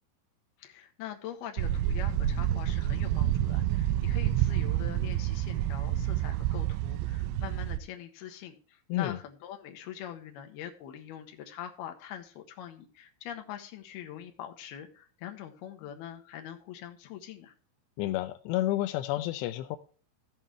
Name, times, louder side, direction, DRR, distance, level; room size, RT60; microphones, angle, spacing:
voice 1, 0.6-17.5, left 10 dB, 65° left, 5 dB, 2.8 m, -43 dB
sound 1, 1.6-7.8, right 12 dB, 85° right, 3.1 m, -28 dB
voice 2, 18.0-19.8, left 14 dB, 90° left, 10 dB, 2.4 m, -30 dB
14.5 x 8.1 x 3.1 m, 0.39 s
omnidirectional pair, 5.7 m